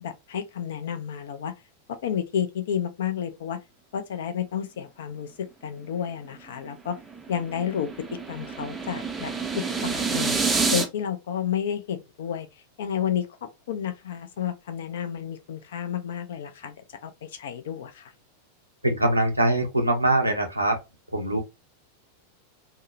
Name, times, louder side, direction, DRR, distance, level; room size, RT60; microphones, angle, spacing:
voice 1, 0.0-1.5 1.9-3.6 3.9-7.0 7.3-7.9 8.3-10.4 10.7-12.5 12.8-13.3 13.7-16.7 17.0-18.1, left 8 dB, 60° left, 0.4 m, -31 dB
sound 1, 6.6-10.9, right 4 dB, 15° right, 0.4 m, -28 dB
voice 2, 18.8-20.8 21.1-21.4, right 1 dB, 85° right, 0.6 m, -22 dB
2.7 x 2.0 x 2.4 m
figure-of-eight pair, 90°, 0 cm